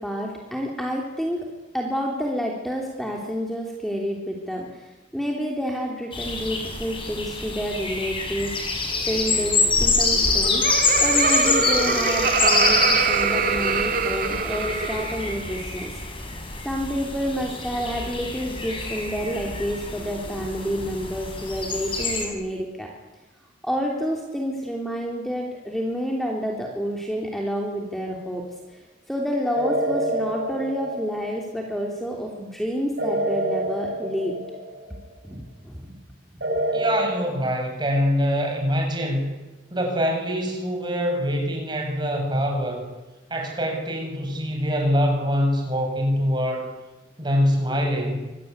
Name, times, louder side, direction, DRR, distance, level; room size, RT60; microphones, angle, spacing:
voice 1, 0.0-1.4 1.7-10.6 11.0-16.2 16.6-22.9 23.6-28.4 28.7-28.8 29.1-34.3 35.2-35.9 36.3-36.4, equal, ahead, 0 dB, 3.3 m, -29 dB
sound 1, 6.1-22.3, left 3 dB, 30° left, 6.4 m, -26 dB
Laughter, 10.1-15.4, right 4 dB, 50° right, 2.8 m, -23 dB
sound 2, 29.5-31.6 33.0-35.0 36.4-37.1, right 1 dB, 65° right, 6.6 m, -27 dB
voice 2, 36.7-39.3 39.7-42.9 43.3-46.7 47.2-48.3, equal, 25° right, 3 dB, 7.0 m, -24 dB
26.5 x 21.0 x 9.7 m, 1.1 s
head